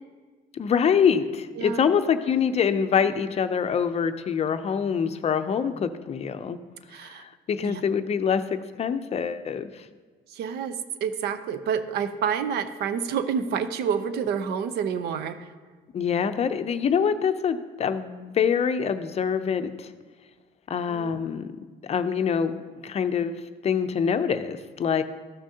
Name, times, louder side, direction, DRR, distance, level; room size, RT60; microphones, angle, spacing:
voice 1, 0.5-6.6 7.0-9.9 15.9-19.9 20.7-21.5 21.8-22.5 22.8-23.4 23.6-25.0, left 7 dB, 40° left, 10 dB, 0.5 m, -25 dB
voice 2, 6.9-7.2 7.6-7.8 10.3-15.5 20.9-21.1, right 7 dB, 75° right, 11 dB, 0.6 m, -28 dB
14.0 x 6.2 x 2.8 m, 1.4 s
cardioid pair, 110°, 17 cm